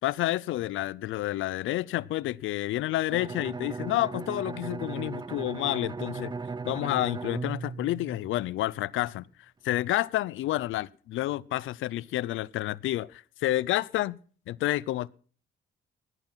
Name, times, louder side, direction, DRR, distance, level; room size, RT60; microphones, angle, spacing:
voice 1, 0.0-6.3 6.7-9.2 9.6-14.2 14.5-15.1, left 15 dB, 80° left, 0.6 m, -29 dB
Bowed string instrument, 3.1-8.8, right 4 dB, 20° right, 0.6 m, -37 dB
16.5 x 11.0 x 5.7 m
cardioid pair, 90°, 20 cm